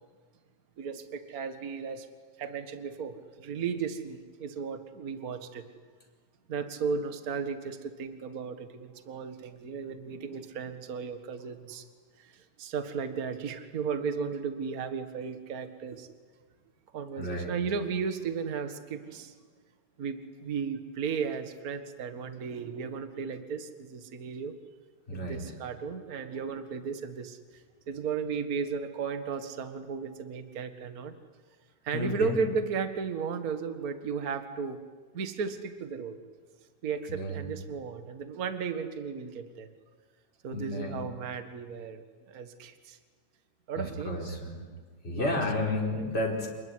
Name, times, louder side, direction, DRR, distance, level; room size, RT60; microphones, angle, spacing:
voice 1, 0.8-2.1 2.4-5.6 6.5-11.8 12.2-16.1 16.9-19.3 20.0-24.5 25.1-31.1 31.8-34.8 35.1-36.2 36.8-39.7 40.4-43.0 43.7-44.3 45.1-45.3 45.9-46.1, right 6 dB, 35° right, 8 dB, 1.6 m, -35 dB
voice 2, 17.2-17.5 25.1-25.4 31.9-32.4 37.1-37.4 40.5-41.0 43.8-44.6 45.0-46.5, left 2 dB, 20° left, -2 dB, 4.7 m, -31 dB
28.0 x 20.5 x 9.7 m, 1.5 s
omnidirectional pair, 3.4 m